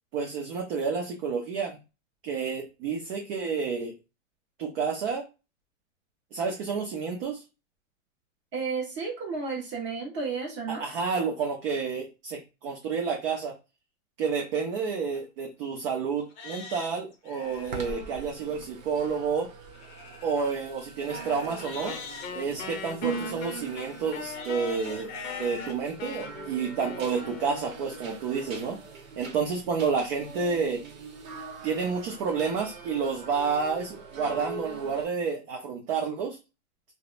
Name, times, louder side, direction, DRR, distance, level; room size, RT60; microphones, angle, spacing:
voice 1, 0.1-1.8 2.2-4.0 4.6-5.2 6.3-7.4 10.7-13.5 14.2-19.5 20.2-22.0 22.3-25.1 25.4-28.8 29.2-30.8 31.6-36.4, right 5 dB, 45° right, 1 dB, 0.6 m, -30 dB
voice 2, 8.5-10.8, right 4 dB, 30° right, -2 dB, 1.1 m, -32 dB
Livestock farm animals working animals, 15.1-15.2 15.8-15.9 16.3-18.0 19.7-22.3 23.4-25.7 26.3-26.4 27.0-27.1, left 4 dB, 25° left, 0.6 m, -43 dB
sound 1, 17.4-35.1, right 5 dB, 80° right, 0.9 m, -42 dB
Wind instrument woodwind instrument, 21.9-28.2, left 7 dB, 80° left, 0.7 m, -40 dB
2.6 x 2.1 x 2.4 m, 0.29 s
hypercardioid pair, 135°, 40 cm